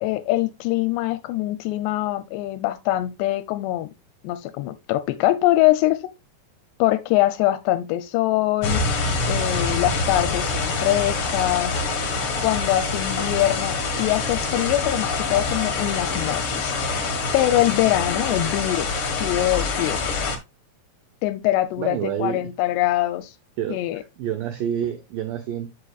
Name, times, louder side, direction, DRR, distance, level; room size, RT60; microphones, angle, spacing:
voice 1, 0.0-3.9 4.2-6.0 6.8-8.8 9.3-11.7 12.4-16.8 17.3-20.2 21.2-23.4 23.7-24.0, left 15 dB, 90° left, 2.8 m, -23 dB
sound 1, 8.6-20.4, left 4 dB, 60° left, 1.5 m, -25 dB
voice 2, 21.8-22.5 23.6-25.7, right 9 dB, 80° right, 2.0 m, -28 dB
10.5 x 6.4 x 2.4 m
omnidirectional pair, 4.8 m